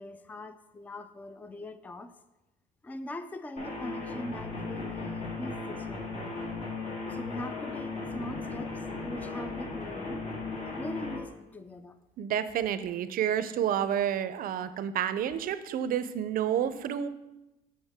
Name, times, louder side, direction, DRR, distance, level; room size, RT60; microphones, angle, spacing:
voice 1, 0.0-2.1 2.8-6.5 7.1-10.2 10.8-12.0, left 1 dB, 10° left, 11 dB, 0.3 m, -42 dB
sound 1, 3.6-11.2, left 3 dB, 45° left, 2.4 m, -36 dB
voice 2, 12.2-17.1, right 9 dB, 60° right, 13 dB, 0.5 m, -29 dB
7.2 x 6.2 x 3.5 m, 0.98 s
cardioid pair, 110°, 17 cm